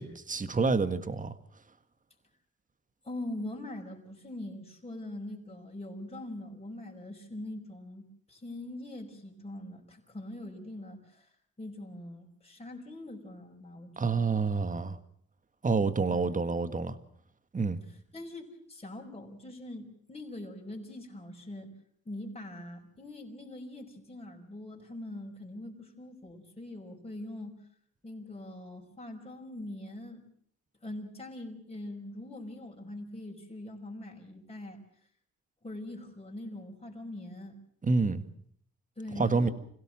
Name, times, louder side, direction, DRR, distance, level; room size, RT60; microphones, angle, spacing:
voice 1, 0.0-1.4 14.0-15.0 15.6-17.0 17.5-17.8 37.8-38.2 39.2-39.5, right 4 dB, 25° right, 11 dB, 1.8 m, -28 dB
voice 2, 3.0-11.3 11.6-14.3 16.1-16.4 17.9-21.7 22.1-27.5 28.0-30.2 30.8-34.8 35.6-37.6 39.0-39.5, left 1 dB, 20° left, 0 dB, 5.4 m, -43 dB
26.5 x 16.5 x 7.6 m, 0.65 s
cardioid pair, 90°, 30 cm